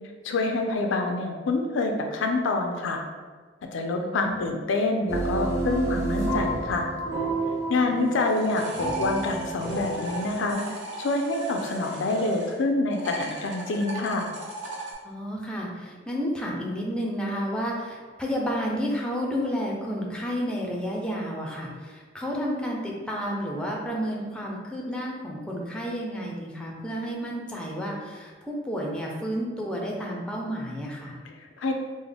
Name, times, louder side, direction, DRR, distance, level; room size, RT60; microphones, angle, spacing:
voice 1, 0.2-3.0 3.6-6.9 7.7-10.6 11.0-14.3 31.3-31.7, left 2 dB, 90° left, 4 dB, 0.4 m, -27 dB
voice 2, 4.0-4.5 7.8-8.0 15.0-31.2, equal, 5° left, -2 dB, 0.4 m, -31 dB
sound 1, 5.1-10.5, right 2 dB, 15° right, 0.8 m, -30 dB
sound 2, 8.0-12.6 12.9-14.9, right 2 dB, 85° right, 0.7 m, -38 dB
3.6 x 2.0 x 3.3 m, 1.5 s
head